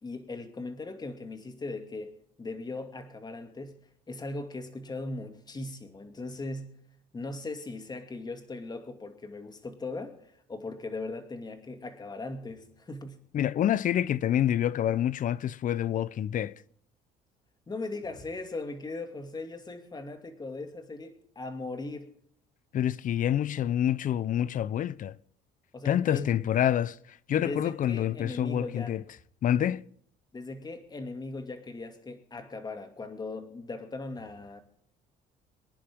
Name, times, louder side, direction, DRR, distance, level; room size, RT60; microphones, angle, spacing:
voice 1, 0.0-6.8 7.1-13.2 17.7-22.2 25.7-26.3 27.4-29.0 30.3-34.6, left 2 dB, 25° left, 2.5 m, -39 dB
voice 2, 13.3-16.5 22.7-25.2 25.8-29.0 29.4-29.8, left 10 dB, 50° left, 0.7 m, -27 dB
24.0 x 10.5 x 3.7 m
cardioid pair, 110°, 17 cm